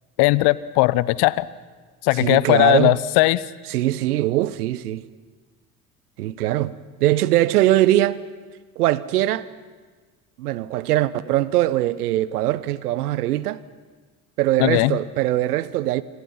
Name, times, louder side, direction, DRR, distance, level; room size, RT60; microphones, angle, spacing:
voice 1, 0.2-1.5 2.0-3.4 14.6-15.0, left 20 dB, 60° left, 1.0 m, -18 dB
voice 2, 2.2-3.0 3.7-5.0 6.2-6.7 7.0-8.2 8.8-9.5 10.4-13.6 14.4-16.0, right 14 dB, 80° right, 1.0 m, -21 dB
27.0 x 26.5 x 5.8 m
hypercardioid pair, 60°, 45 cm